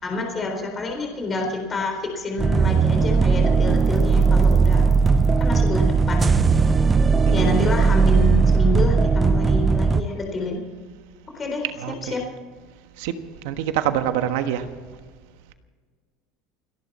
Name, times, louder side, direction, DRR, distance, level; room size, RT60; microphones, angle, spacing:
voice 1, 0.0-4.9 5.4-6.4 7.3-10.6 11.3-11.7 12.1-12.2, left 2 dB, 20° left, 2 dB, 3.9 m, -28 dB
sound 1, 2.4-10.0, right 4 dB, 15° right, 0.6 m, -18 dB
voice 2, 7.2-7.7 11.8-12.2 13.0-13.1 13.4-14.6, right 11 dB, 70° right, 9 dB, 1.3 m, -25 dB
29.0 x 11.0 x 4.2 m, 1.5 s
cardioid pair, 160°, 0 cm